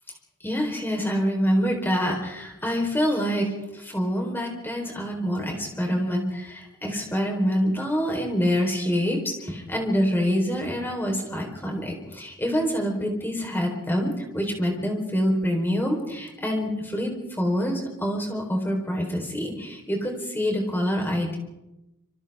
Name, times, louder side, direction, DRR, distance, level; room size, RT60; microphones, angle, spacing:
voice 1, 0.4-21.4, equal, 10° left, 1 dB, 4.3 m, -26 dB
27.0 x 26.5 x 3.7 m, 0.94 s
head